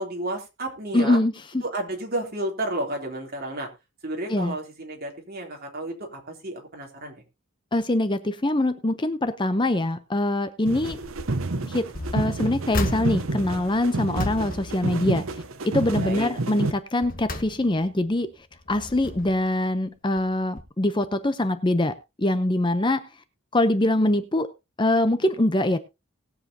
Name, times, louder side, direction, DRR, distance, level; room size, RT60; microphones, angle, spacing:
voice 1, 0.0-1.2 1.6-3.7 4.0-7.2 15.9-16.3, right 1 dB, 45° right, 1 dB, 3.3 m, -32 dB
voice 2, 0.9-1.6 4.3-4.6 7.7-11.0 11.6-15.2 15.6-18.3 18.7-23.1 23.5-24.5 24.8-25.8, left 1 dB, 25° left, 10 dB, 0.7 m, -23 dB
sound 1, 10.7-16.7, right 2 dB, 80° right, 0.9 m, -30 dB
sound 2, 10.9-11.5 11.9-15.6 15.9-16.3 16.8-18.0 18.5-19.5 20.2-20.3 20.6-20.7, left 2 dB, 40° left, 1.4 m, -34 dB
20.0 x 7.5 x 2.8 m, 0.26 s
head